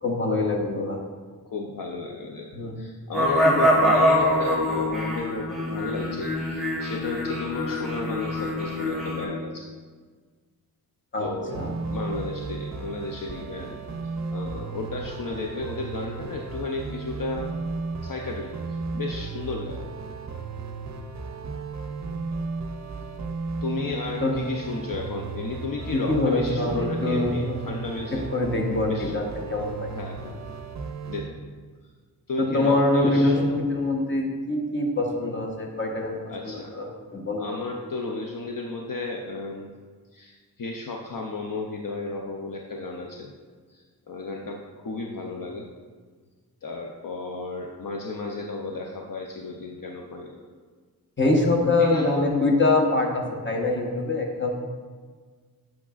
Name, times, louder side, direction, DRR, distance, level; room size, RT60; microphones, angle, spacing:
voice 1, 0.0-1.0 2.5-2.8 3.4-3.5 11.1-11.7 24.2-24.3 25.9-27.6 28.1-29.2 29.5-29.9 32.4-36.2 36.4-37.4 51.2-54.6, left 2 dB, 30° left, 0 dB, 1.1 m, -24 dB
voice 2, 1.5-2.5 2.8-9.6 11.2-11.6 11.9-17.5 18.0-19.8 23.6-28.2 28.9-29.1 29.9-30.4 31.1-31.4 32.3-33.6 36.3-36.7 37.4-39.7 40.1-43.3 43.7-45.7 46.6-50.5 51.8-52.4, left 3 dB, 60° left, 1 dB, 0.6 m, -33 dB
sound 1, 3.1-9.2, equal, ahead, 1.4 m, -24 dB
sound 2, 11.5-31.3, right 4 dB, 45° right, 0.5 m, -34 dB
8.5 x 6.0 x 2.4 m, 1.5 s
wide cardioid pair, 75°, 39 cm